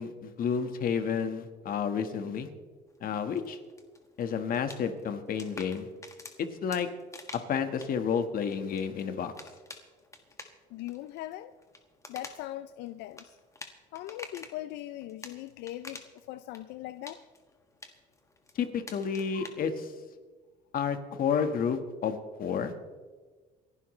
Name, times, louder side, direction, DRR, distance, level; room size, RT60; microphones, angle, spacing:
voice 1, 0.0-2.5 3.0-3.6 4.2-5.9 6.6-6.9 7.5-9.3 18.5-19.9 20.7-23.0, left 7 dB, 60° left, 8 dB, 1.5 m, -31 dB
sound 1, 2.9-14.6 15.0-16.2 16.5-19.5, left 3 dB, 20° left, 1.5 m, -49 dB
voice 2, 10.7-11.5 12.1-13.4 13.9-17.2, left 14 dB, 90° left, 13 dB, 0.5 m, -40 dB
28.0 x 11.5 x 3.2 m, 1.4 s
cardioid pair, 110°, 17 cm